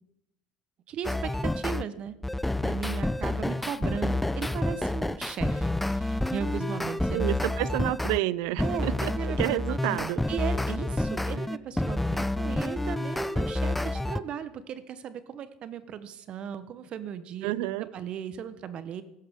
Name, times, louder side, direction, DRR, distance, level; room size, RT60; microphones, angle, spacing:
voice 1, 0.9-2.1 2.6-7.3 8.6-9.4 9.7-9.8 10.3-17.5 17.8-19.0, right 8 dB, 50° right, 13 dB, 1.0 m, -37 dB
sound 1, 1.0-1.8 2.2-8.2 8.6-14.2, left 1 dB, 5° left, 0.5 m, -29 dB
voice 2, 7.1-10.2 17.4-17.9, right 17 dB, 70° right, 20 dB, 0.4 m, -29 dB
15.5 x 12.5 x 3.6 m, 0.91 s
hypercardioid pair, 75°, 2 cm